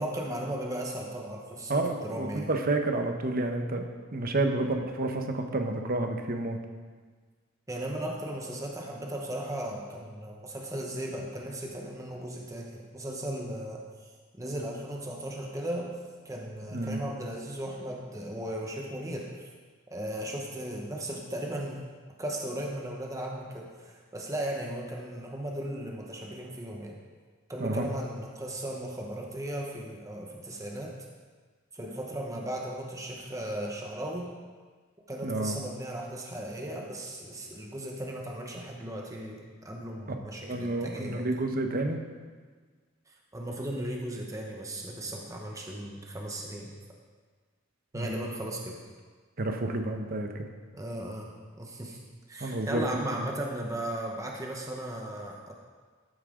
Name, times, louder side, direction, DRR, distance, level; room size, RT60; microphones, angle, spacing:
voice 1, 0.0-2.5 4.5-4.7 7.7-16.0 16.2-19.5 19.9-21.9 22.2-27.0 27.5-31.0 31.7-34.3 35.1-41.3 43.1-46.7 47.9-48.8 50.7-51.3 51.6-52.0 52.3-55.5, right 1 dB, 15° right, 0 dB, 1.0 m, -36 dB
voice 2, 1.7-6.6 16.7-17.0 27.6-27.8 35.2-35.5 40.1-40.2 40.4-42.0 47.9-48.1 49.4-50.5 52.4-53.1, right 2 dB, 45° right, 5 dB, 1.0 m, -30 dB
12.5 x 8.9 x 3.8 m, 1.5 s
head